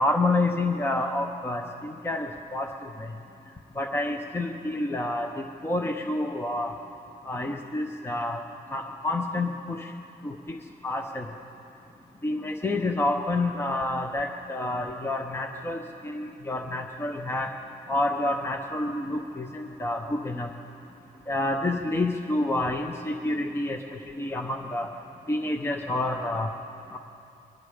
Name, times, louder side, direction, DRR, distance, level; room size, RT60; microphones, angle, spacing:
voice 1, 0.0-2.7 3.8-6.7 7.3-8.4 8.7-9.9 10.2-10.6 10.8-11.3 12.2-15.8 16.0-17.5 17.9-20.5 21.3-23.8 24.2-24.9 25.3-26.5 26.9-27.0, left 2 dB, 15° left, 4 dB, 0.8 m, -28 dB
30.0 x 22.5 x 5.0 m, 2.8 s
wide cardioid pair, 160°, 17 cm